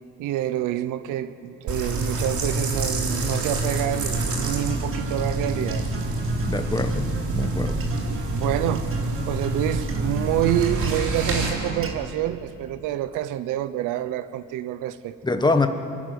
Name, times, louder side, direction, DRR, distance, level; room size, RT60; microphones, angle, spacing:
voice 1, 0.2-5.8 8.0-9.0 9.3-15.2, right 12 dB, 85° right, 0.9 m, -27 dB
sound 1, 1.7-11.5, right 2 dB, 70° right, 3.8 m, -27 dB
Acoustic guitar, 3.9-11.9, right 5 dB, 45° right, 2.0 m, -36 dB
voice 2, 6.5-7.8 15.2-15.7, left 3 dB, 15° left, 1.4 m, -24 dB
26.5 x 11.5 x 9.5 m
cardioid pair, 115°, 31 cm